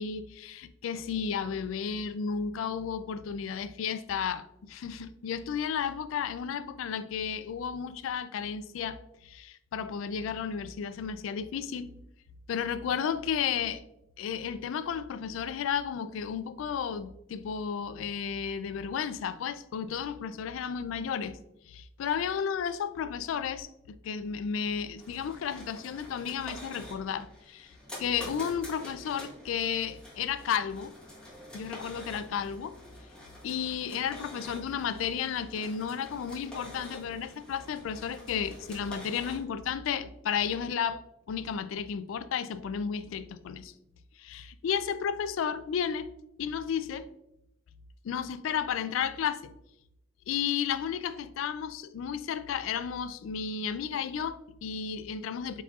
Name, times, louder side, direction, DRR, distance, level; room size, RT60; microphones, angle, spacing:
voice 1, 0.0-11.9 12.5-13.8 14.2-21.4 21.7-27.7 28.0-30.9 31.5-32.7 33.4-41.0 41.3-43.7 44.2-46.1 46.4-47.1 48.0-49.5 50.3-55.6, left 7 dB, 80° left, 0.3 m, -33 dB
sound 1, 25.0-39.4, left 1 dB, 5° left, 1.2 m, -47 dB
4.5 x 4.2 x 2.3 m
head